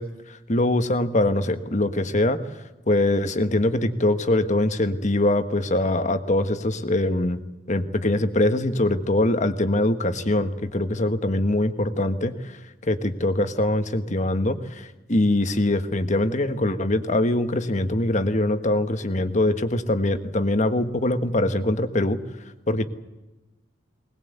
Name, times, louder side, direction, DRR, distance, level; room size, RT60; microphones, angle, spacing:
voice 1, 0.3-2.4 2.9-7.4 7.7-12.6 12.8-22.2 22.7-22.8, left 1 dB, 40° left, 9 dB, 1.4 m, -23 dB
20.5 x 20.5 x 8.1 m, 1.1 s
head